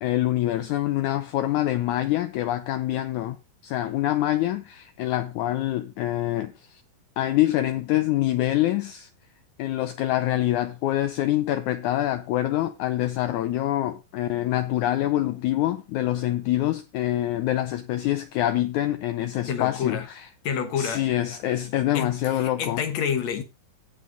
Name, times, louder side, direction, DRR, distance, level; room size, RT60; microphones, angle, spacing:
voice 1, 0.0-3.4 3.6-6.8 7.2-9.1 9.6-20.3 20.8-22.8, left 14 dB, 75° left, 1.8 m, -25 dB
voice 2, 19.5-20.1 20.4-21.1 21.9-23.4, left 7 dB, 60° left, 2.2 m, -28 dB
17.5 x 5.8 x 3.9 m
omnidirectional pair, 4.0 m